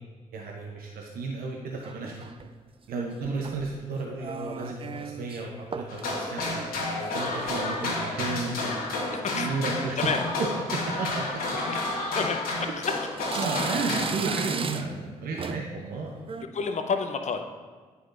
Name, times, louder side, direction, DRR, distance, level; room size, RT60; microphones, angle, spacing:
voice 1, 0.3-2.1 2.9-8.7 9.3-10.0 10.7-11.4 12.6-12.7 13.4-16.1, right 3 dB, 65° right, -1 dB, 0.8 m, -33 dB
sound 1, 1.8-2.5 3.2-3.8 4.2-5.4 5.7-6.1 6.4-8.4 8.7-9.1 9.7-10.0 10.4-10.5 11.4-11.5 12.2-12.8 13.2-15.1 15.4-15.8 16.1-16.4, right 5 dB, 35° right, 0.4 m, -37 dB
sound 2, 5.9-14.1, left 2 dB, 65° left, 1.4 m, -31 dB
voice 2, 9.1-9.5 10.0-10.2 10.9-11.1 11.7-11.8 12.1-12.4 12.8-12.9 13.3-13.5 16.4-17.4, left 5 dB, 45° left, 6 dB, 0.7 m, -30 dB
9.1 x 4.7 x 2.5 m, 1.5 s
hypercardioid pair, 40°, 17 cm